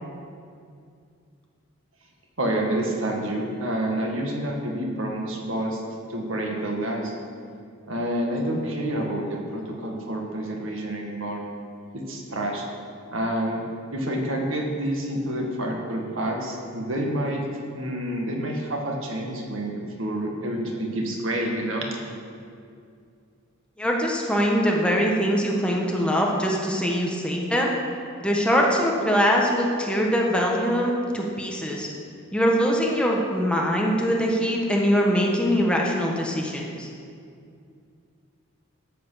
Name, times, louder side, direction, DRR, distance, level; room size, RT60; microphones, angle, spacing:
voice 1, 2.4-5.8 6.1-7.1 7.9-11.4 11.9-12.7 13.1-13.6 13.9-17.4 17.7-21.9, right 1 dB, 75° right, 0 dB, 1.9 m, -28 dB
voice 2, 23.8-27.7 28.2-31.9 32.3-36.9, equal, 5° left, -1 dB, 1.2 m, -23 dB
13.5 x 7.7 x 5.8 m, 2.3 s
head